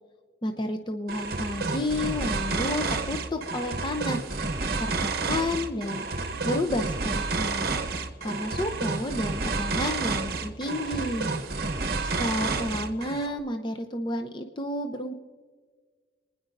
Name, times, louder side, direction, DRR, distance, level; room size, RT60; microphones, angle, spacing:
voice 1, 0.4-4.2 4.8-7.7 8.2-11.3 12.2-15.1, left 1 dB, 25° left, 5 dB, 0.6 m, -31 dB
sound 1, 1.1-13.3, right 3 dB, 55° right, 1.0 m, -30 dB
25.0 x 10.0 x 2.6 m, 1.5 s
head